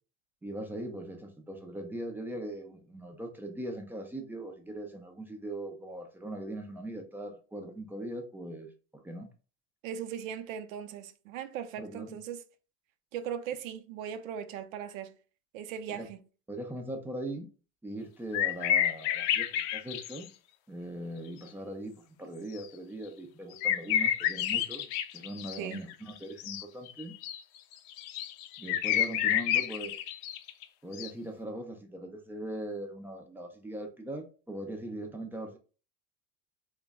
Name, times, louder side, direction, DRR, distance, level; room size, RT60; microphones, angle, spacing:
voice 1, 0.4-9.3 11.8-12.2 15.9-16.1 16.5-17.5 17.8-20.3 20.7-24.9 25.1-27.2 28.6-29.9 30.8-35.6, right 1 dB, 5° right, 0.3 m, -40 dB
voice 2, 9.8-12.4 13.1-15.1 15.5-16.2 25.6-25.8, right 8 dB, 85° right, 0.6 m, -38 dB
sound 1, 18.3-20.3 22.6-22.7 23.6-30.6 30.9-31.1, left 11 dB, 55° left, 0.5 m, -30 dB
3.8 x 2.1 x 3.4 m
supercardioid pair, 120°, 39 cm